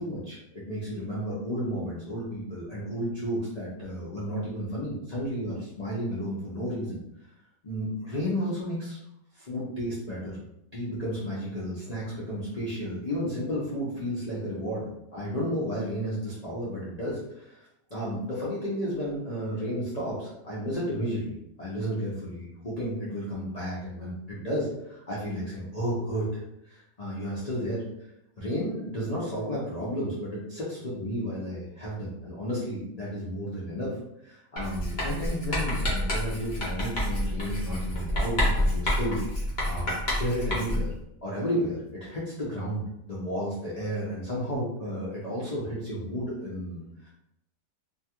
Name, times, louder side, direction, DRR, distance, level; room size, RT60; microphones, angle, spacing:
voice 1, 0.0-7.0 7.6-9.0 9.3-10.4 10.7-27.8 28.4-33.9 34.2-39.2 39.6-40.9 41.2-47.1, equal, 85° left, -8 dB, 0.3 m, -32 dB
Writing, 34.6-41.0, left 1 dB, 40° left, 0.7 m, -28 dB
2.8 x 2.3 x 2.9 m, 0.82 s
omnidirectional pair, 1.8 m